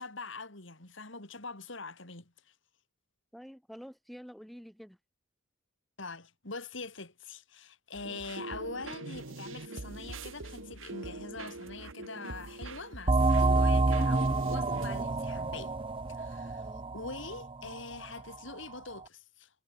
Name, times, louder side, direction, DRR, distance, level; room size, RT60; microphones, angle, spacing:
voice 1, 0.0-2.5 6.0-15.8 16.1-19.5, left 3 dB, 60° left, 3.4 m, -43 dB
voice 2, 3.3-5.0 16.5-16.9, equal, ahead, 2.9 m, -48 dB
sound 1, 7.9-15.0, right 3 dB, 70° right, 1.5 m, -43 dB
sound 2, 13.1-18.3, right 2 dB, 25° right, 0.6 m, -28 dB
head